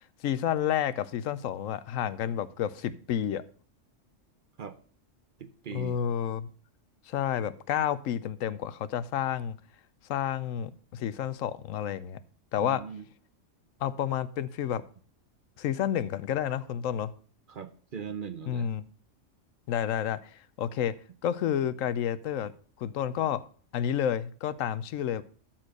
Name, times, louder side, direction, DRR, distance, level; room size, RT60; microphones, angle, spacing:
voice 1, 0.2-3.4 5.7-6.5 7.1-9.6 10.1-12.2 12.5-12.8 13.8-14.8 15.6-17.1 18.5-18.8 19.7-20.9 21.2-22.5 22.8-23.4 23.7-25.2, left 9 dB, 85° left, 1.0 m, -30 dB
voice 2, 5.4-6.0 12.6-13.0 17.5-18.7, right 7 dB, 50° right, 0.8 m, -40 dB
13.0 x 4.5 x 6.4 m
omnidirectional pair, 1.3 m